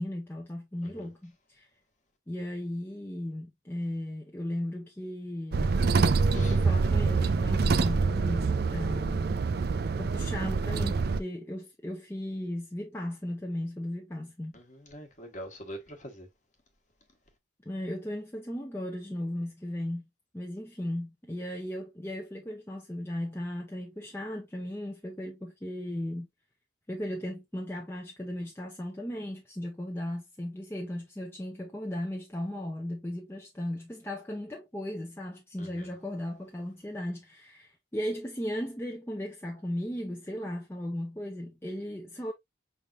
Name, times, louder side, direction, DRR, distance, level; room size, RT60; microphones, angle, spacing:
voice 1, 0.0-1.7 2.3-5.8 6.3-9.3 10.0-14.5 17.7-20.0 20.3-26.3 26.9-42.3, left 1 dB, 10° left, 0.6 m, -36 dB
sound 1, 5.5-11.2, right 4 dB, 50° right, 0.4 m, -26 dB
voice 2, 14.5-16.3 35.6-35.9, equal, 40° left, 1.2 m, -44 dB
5.6 x 3.5 x 2.4 m
head